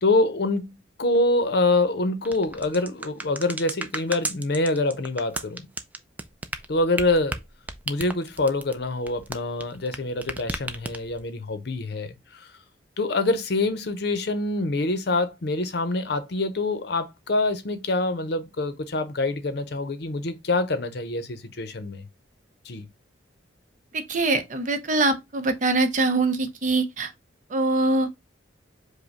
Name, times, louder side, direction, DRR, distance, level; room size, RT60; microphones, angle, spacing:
voice 1, 0.0-5.7 6.7-7.4 7.9-12.5 13.0-22.0 22.7-22.9, left 2 dB, 60° left, 0.7 m, -25 dB
sound 1, 2.3-10.0 10.2-11.2, right 2 dB, 10° right, 0.3 m, -33 dB
voice 2, 23.9-27.1 27.5-28.1, right 2 dB, 40° right, 0.7 m, -23 dB
5.0 x 2.2 x 4.8 m
head